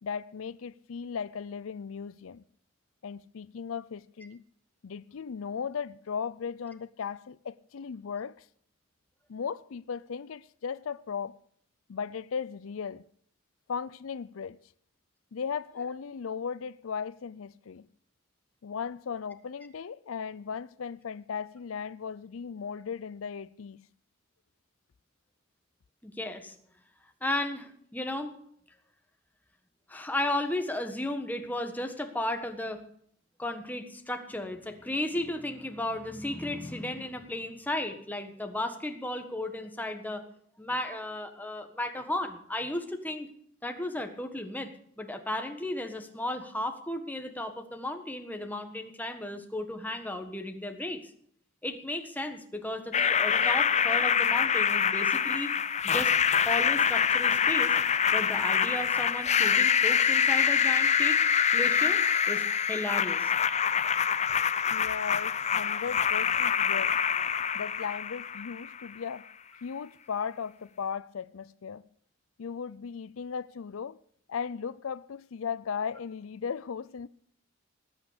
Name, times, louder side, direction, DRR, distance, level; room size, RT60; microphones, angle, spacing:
voice 1, 0.0-2.4 3.0-4.4 4.8-8.5 9.3-11.4 11.9-13.0 13.7-14.6 15.3-17.9 18.6-23.8 64.7-67.0 67.5-69.3 69.6-71.8 72.4-74.0 74.3-77.1, left 6 dB, 80° left, 0.5 m, -37 dB
voice 2, 26.0-26.5 27.2-28.3 29.9-32.8 33.4-40.2 40.6-43.3 43.6-44.7 45.0-51.0 51.6-55.5 55.8-56.1 56.4-57.8 58.1-61.2 61.5-62.0 62.3-63.3, left 1 dB, 10° left, 1.4 m, -34 dB
sound 1, 52.9-68.9, left 7 dB, 35° left, 0.5 m, -25 dB
19.5 x 8.2 x 6.7 m
head